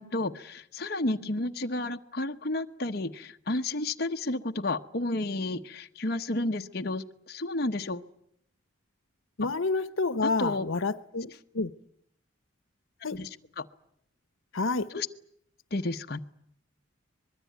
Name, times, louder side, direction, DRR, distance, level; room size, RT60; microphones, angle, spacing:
voice 1, 0.0-8.0 10.2-10.7 13.1-13.3 13.6-13.7 14.9-15.1 15.7-16.2, left 2 dB, 50° left, 1.0 m, -31 dB
voice 2, 9.4-11.7 13.0-13.2 14.5-14.9, left 3 dB, 85° left, 1.0 m, -29 dB
24.0 x 22.0 x 9.3 m
head